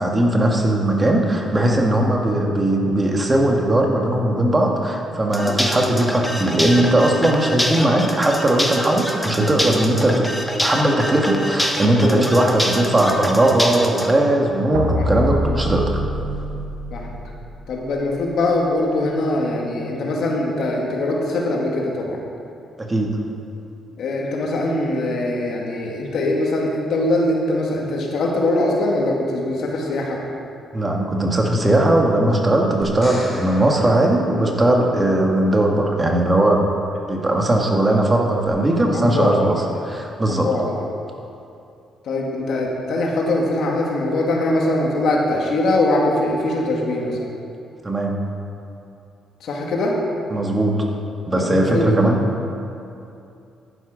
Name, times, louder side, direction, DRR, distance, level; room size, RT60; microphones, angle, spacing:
voice 1, 0.0-10.3 10.6-16.0 22.8-23.2 30.7-36.7 37.1-40.5 47.8-48.2 50.3-50.8 51.3-52.2, right 1 dB, 20° right, 0 dB, 1.7 m, -18 dB
sound 1, 5.3-14.1, equal, 5° left, 1.2 m, -26 dB
sound 2, 14.4-18.4, equal, 80° right, 1.1 m, -26 dB
voice 2, 17.7-22.2 24.0-30.2 38.9-39.5 40.3-40.7 42.0-47.2 49.4-50.0 51.4-52.0, left 2 dB, 70° left, -1 dB, 2.2 m, -22 dB
sound 3, 32.8-35.1 38.5-38.6, left 1 dB, 25° left, 2.8 m, -37 dB
11.0 x 10.5 x 5.1 m, 2.6 s
cardioid pair, 90°, 0 cm